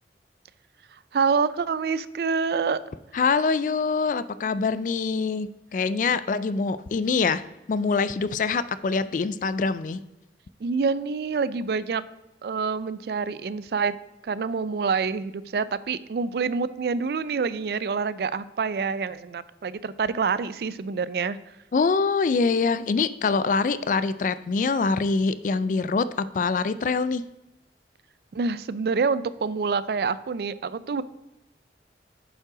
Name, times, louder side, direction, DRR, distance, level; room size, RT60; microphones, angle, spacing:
voice 1, 1.1-2.8 6.1-6.2 10.6-12.0 12.4-13.9 14.2-21.4 28.3-31.0, right 5 dB, 60° right, 17 dB, 0.3 m, -27 dB
voice 2, 3.1-7.4 7.7-10.0 21.7-27.2, left 4 dB, 45° left, 15 dB, 0.3 m, -24 dB
7.5 x 5.4 x 4.9 m, 0.96 s
head